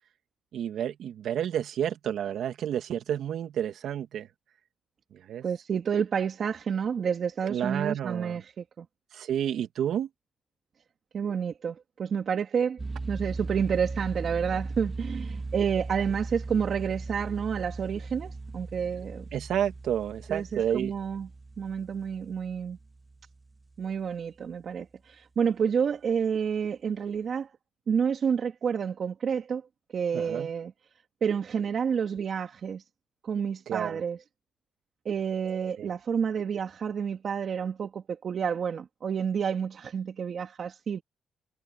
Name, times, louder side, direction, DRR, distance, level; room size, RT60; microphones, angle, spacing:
voice 1, 0.5-4.3 5.3-5.4 7.5-8.3 9.1-10.1 19.3-20.9 30.1-30.5 33.7-34.0 35.8-35.9, right 10 dB, 75° right, 2.2 m, -30 dB
voice 2, 5.4-8.9 11.1-12.8 13.1-19.3 20.3-21.3 21.6-22.8 23.8-27.5 27.9-29.6 29.9-30.7 31.2-32.8 33.2-34.2 35.0-41.0, right 7 dB, 55° right, 2.4 m, -29 dB
sound 1, 12.8-23.7, right 3 dB, 25° right, 3.5 m, -38 dB
cardioid pair, 75°, 0 cm